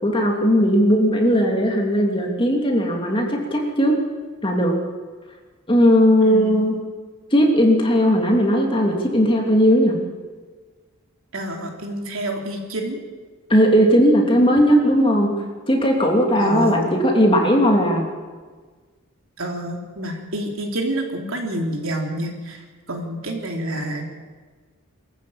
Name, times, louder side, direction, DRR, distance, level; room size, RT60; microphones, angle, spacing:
voice 1, 0.0-4.0 4.4-4.7 5.7-6.8 7.3-10.0 13.5-15.3 15.7-18.1, equal, 25° left, 1 dB, 2.9 m, -17 dB
voice 2, 6.2-6.6 11.3-13.0 16.4-16.8 19.4-24.1, right 1 dB, 70° right, 2 dB, 3.4 m, -28 dB
23.5 x 14.0 x 8.8 m, 1.4 s
head